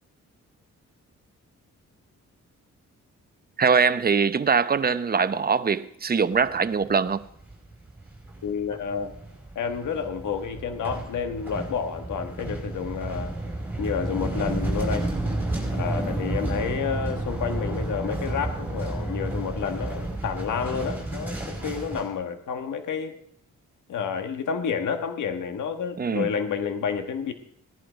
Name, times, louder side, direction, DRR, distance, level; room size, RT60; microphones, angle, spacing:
voice 1, 3.6-7.2 26.0-26.3, right 5 dB, 30° right, 0.8 m, -22 dB
sound 1, 6.3-6.8 7.1-22.1, right 2 dB, 5° right, 5.0 m, -31 dB
voice 2, 8.4-9.1 9.5-13.3 13.8-15.1 15.7-23.2 23.9-27.3, left 6 dB, 80° left, 1.5 m, -30 dB
18.0 x 11.5 x 5.1 m
cardioid pair, 105°, 30 cm